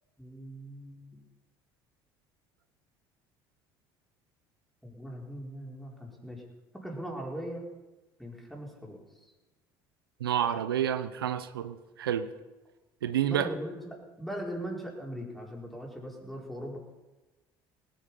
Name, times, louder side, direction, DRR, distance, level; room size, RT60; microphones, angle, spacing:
voice 1, 0.2-1.2 4.8-6.4 6.7-7.6 8.2-9.3 13.2-16.8, equal, ahead, -2 dB, 4.7 m, -40 dB
voice 2, 10.2-12.3 13.0-13.5, right 10 dB, 90° right, 11 dB, 0.6 m, -29 dB
18.5 x 8.7 x 5.7 m, 1.1 s
hypercardioid pair, 65°, 12 cm